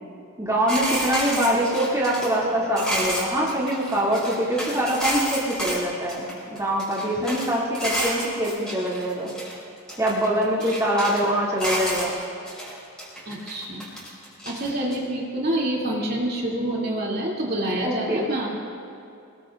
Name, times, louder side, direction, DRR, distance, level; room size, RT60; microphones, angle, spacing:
voice 1, 0.4-9.3 10.0-12.2 17.8-18.3, right 1 dB, 15° right, -7 dB, 2.6 m, -24 dB
sound 1, 0.7-5.8 6.1-7.5 7.7-9.5 9.9-11.2 11.6-12.7 13.0-14.9, equal, 5° left, 5.3 m, -30 dB
voice 2, 10.3-10.8 13.3-13.9 14.4-18.5, right 1 dB, 45° right, -4 dB, 2.7 m, -27 dB
27.5 x 21.0 x 2.5 m, 2.6 s
head